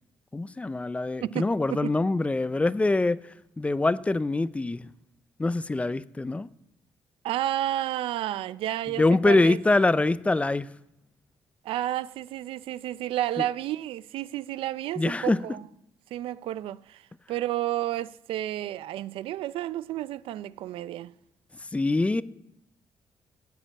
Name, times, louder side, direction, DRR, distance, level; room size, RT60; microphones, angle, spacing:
voice 1, 0.3-3.2 3.6-4.9 5.4-6.5 9.0-10.7 15.0-15.4 21.7-22.2, left 2 dB, 15° left, 0.4 m, -24 dB
voice 2, 1.2-1.9 7.2-9.6 11.6-15.7 16.1-21.1, right 13 dB, 85° right, 0.4 m, -31 dB
15.0 x 7.4 x 8.7 m
cardioid pair, 125°, 9 cm